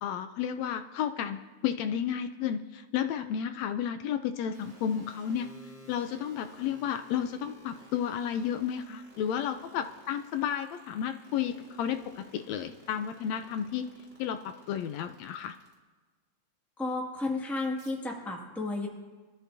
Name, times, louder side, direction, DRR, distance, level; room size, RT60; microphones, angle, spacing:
voice 1, 0.0-5.5 5.9-13.9 14.2-15.5, left 9 dB, 80° left, 9 dB, 1.6 m, -32 dB
sound 1, 4.5-15.7 17.8-17.9, right 1 dB, 15° right, 3.9 m, -55 dB
voice 2, 16.8-18.9, left 2 dB, ahead, -1 dB, 1.2 m, -32 dB
24.0 x 13.5 x 2.7 m, 1.3 s
omnidirectional pair, 3.5 m